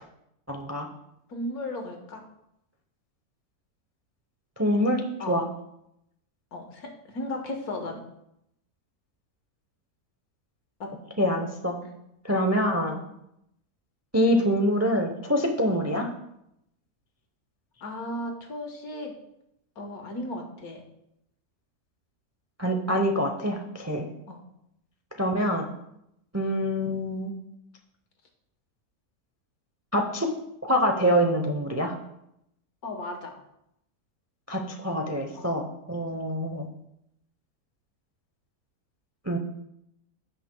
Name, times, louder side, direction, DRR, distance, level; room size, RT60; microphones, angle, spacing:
voice 1, 0.5-0.9 4.6-5.0 5.3-5.5 11.2-11.8 12.2-13.0 14.1-16.1 22.6-24.1 25.2-25.7 26.3-27.3 29.9-30.3 30.6-32.0 34.5-36.7 39.3-39.4, equal, 25° right, 3 dB, 0.3 m, -25 dB
voice 2, 1.3-2.2 5.2-5.5 6.5-8.0 10.8-10.9 11.8-12.0 17.8-19.1 19.8-20.8 24.3-24.4 32.8-33.3 35.3-35.5, left 1 dB, 70° left, 3 dB, 1.7 m, -35 dB
16.5 x 5.7 x 2.2 m, 0.80 s
omnidirectional pair, 1.7 m